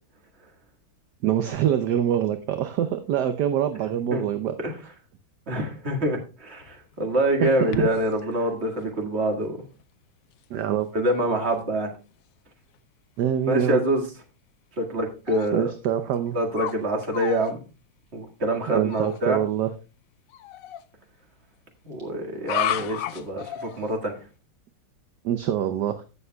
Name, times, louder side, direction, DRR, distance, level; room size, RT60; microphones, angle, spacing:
voice 1, 1.2-4.5 7.4-7.9 10.5-10.9 13.2-13.8 15.5-16.4 18.7-19.7 25.2-26.0, right 10 dB, 70° right, 9 dB, 1.2 m, -25 dB
voice 2, 5.5-9.6 10.9-11.9 13.5-14.0 14.8-15.7 16.3-17.6 18.1-19.4 21.9-24.2, right 1 dB, 35° right, 2 dB, 2.0 m, -25 dB
sound 1, 6.6-8.2 8.9-9.0 9.7-9.8 10.4-10.7 11.1-11.2 11.4-11.7 12.2-12.3 15.3-15.5 16.1-16.8 17.0-17.5 18.9-19.2 20.3-20.8 22.4-23.9, left 11 dB, 70° left, 0.8 m, -33 dB
15.0 x 6.9 x 2.3 m, 0.31 s
omnidirectional pair, 2.0 m